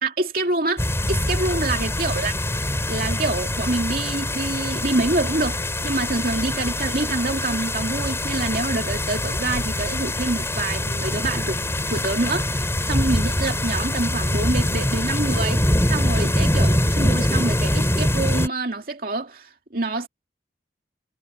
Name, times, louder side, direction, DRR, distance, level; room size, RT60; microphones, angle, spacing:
voice 1, 0.0-2.3 2.9-11.6 11.9-20.1, right 2 dB, 55° right, 2.4 m, -26 dB
sound 1, 0.8-18.5, left 1 dB, 15° left, 4.7 m, -24 dB
head